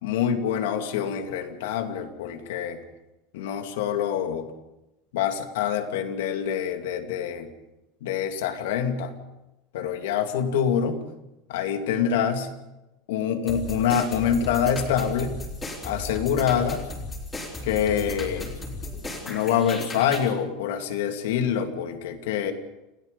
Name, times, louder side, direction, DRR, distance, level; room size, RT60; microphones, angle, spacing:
voice 1, 0.0-2.8 3.3-4.5 5.1-7.5 8.0-9.1 9.7-11.0 11.5-12.5 13.1-15.4 15.8-16.8 17.7-18.6 19.3-22.5, left 8 dB, 80° left, 6 dB, 2.6 m, -26 dB
sound 1, 13.5-20.3, left 2 dB, 15° left, 3.9 m, -35 dB
28.5 x 17.5 x 5.3 m, 0.96 s
supercardioid pair, 175°, 0 cm